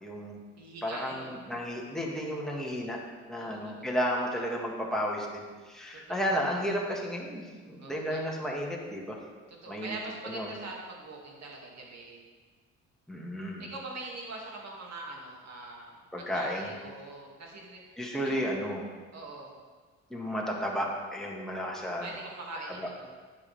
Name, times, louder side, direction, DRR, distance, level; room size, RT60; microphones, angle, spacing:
voice 1, 0.0-0.4 0.8-3.0 3.3-9.2 9.7-10.0 10.2-10.5 13.1-13.6 16.1-16.7 18.0-18.9 20.1-22.1 22.7-22.9, equal, ahead, -2 dB, 1.8 m, -33 dB
voice 2, 0.6-1.3 3.4-3.9 6.1-6.2 7.8-8.2 9.5-12.2 13.6-17.8 18.2-18.4 19.1-19.5 22.0-23.1, right 2 dB, 60° right, -2 dB, 2.3 m, -43 dB
9.8 x 7.5 x 3.5 m, 1.4 s
cardioid pair, 90°, 30 cm